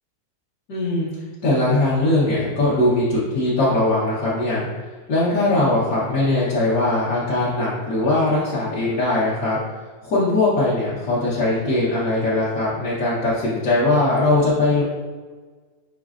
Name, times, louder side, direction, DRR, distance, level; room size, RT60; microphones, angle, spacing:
voice 1, 0.7-1.1 1.4-4.6 5.1-9.6 10.0-14.8, left 2 dB, 65° left, -11 dB, 1.5 m, -20 dB
6.0 x 3.1 x 2.4 m, 1.4 s
omnidirectional pair, 1.7 m